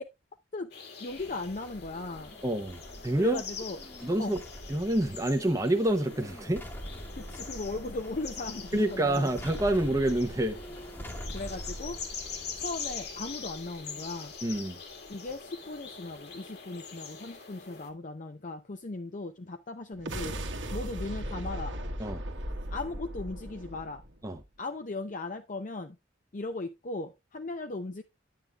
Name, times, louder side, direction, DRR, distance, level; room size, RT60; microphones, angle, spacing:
sound 1, 0.7-17.9, left 5 dB, 60° left, 2.0 m, -44 dB
voice 1, 1.0-2.4 3.2-3.8 4.2-4.4 7.1-9.3 11.3-12.0 12.6-14.3 15.1-20.3 20.7-21.8 22.7-24.0 24.6-26.0 26.3-28.0, left 2 dB, 45° left, 0.6 m, -37 dB
sound 2, 1.1-16.6 16.9-17.0, equal, 10° left, 1.2 m, -45 dB
voice 2, 2.4-3.4 4.0-4.4 4.7-6.6 8.7-10.6 14.4-14.8 22.0-22.2 24.2-24.4, right 1 dB, 15° right, 0.8 m, -27 dB
sound 3, 19.9-24.4, right 1 dB, 80° right, 1.4 m, -37 dB
9.5 x 9.1 x 2.4 m
head